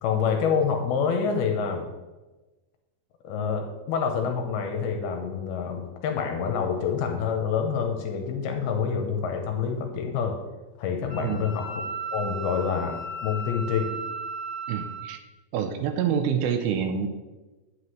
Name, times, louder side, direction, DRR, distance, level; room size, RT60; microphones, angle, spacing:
voice 1, 0.0-1.9 3.2-10.4 10.8-11.7 12.1-13.9, left 6 dB, 80° left, 4 dB, 2.6 m, -27 dB
Wind instrument woodwind instrument, 11.1-15.1, right 2 dB, 20° right, 1.6 m, -35 dB
voice 2, 11.2-11.5 14.7-15.2 15.5-17.1, right 7 dB, 80° right, 6 dB, 2.4 m, -27 dB
9.6 x 8.2 x 3.2 m, 1.1 s
omnidirectional pair, 4.6 m